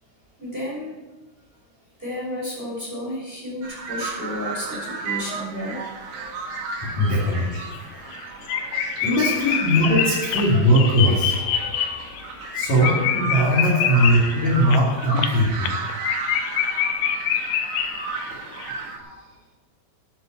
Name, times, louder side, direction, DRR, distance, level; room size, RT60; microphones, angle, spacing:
voice 1, 0.4-1.0 2.0-5.8 6.9-7.0 9.5-9.6 11.0-11.1 11.5-11.8 13.7-14.0 14.4-15.2 16.1-16.9 18.0-19.3, left 1 dB, 10° right, -4 dB, 4.5 m, -34 dB
sound 1, 3.6-19.0, right 4 dB, 65° right, 4.5 m, -34 dB
voice 2, 6.8-7.7 9.0-11.4 12.5-15.7, equal, 40° left, -5 dB, 3.6 m, -20 dB
sound 2, 7.3-7.4 7.7-7.8 8.1-8.2 8.5-18.3 18.6-18.7, left 9 dB, 80° left, 3.1 m, -26 dB
15.0 x 11.0 x 4.8 m, 1.3 s
omnidirectional pair, 5.8 m